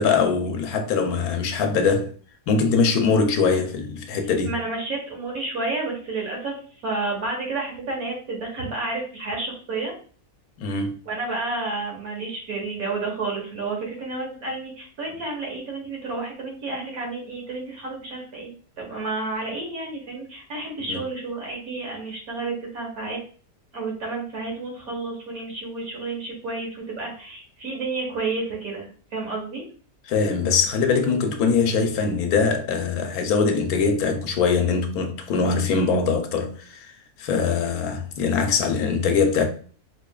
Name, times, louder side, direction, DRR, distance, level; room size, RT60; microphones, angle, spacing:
voice 1, 0.0-2.1 2.5-4.5 10.6-10.9 20.9-21.0 30.1-36.9 37.2-39.4, left 5 dB, 75° left, 1.1 m, -22 dB
voice 2, 4.4-6.6 6.8-9.9 11.0-23.2 23.7-29.6, right 3 dB, 70° right, 1.6 m, -30 dB
4.2 x 2.9 x 2.2 m
omnidirectional pair, 1.6 m